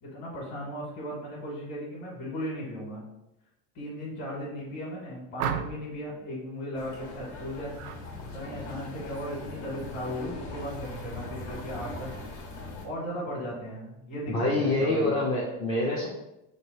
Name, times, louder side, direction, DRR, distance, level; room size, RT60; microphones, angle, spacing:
voice 1, 0.0-3.0 3.7-7.8 8.2-12.1 12.5-15.2, equal, 45° left, -5 dB, 1.3 m, -36 dB
sound 1, 5.4-6.0 7.7-8.0 8.4-8.8, right 8 dB, 80° right, 0.5 m, -33 dB
sound 2, 6.7-12.9, left 1 dB, 85° left, 1.3 m, -40 dB
voice 2, 14.3-16.1, left 2 dB, 15° left, -3 dB, 0.3 m, -26 dB
3.2 x 2.9 x 4.2 m, 0.90 s
cardioid pair, 165°, 34 cm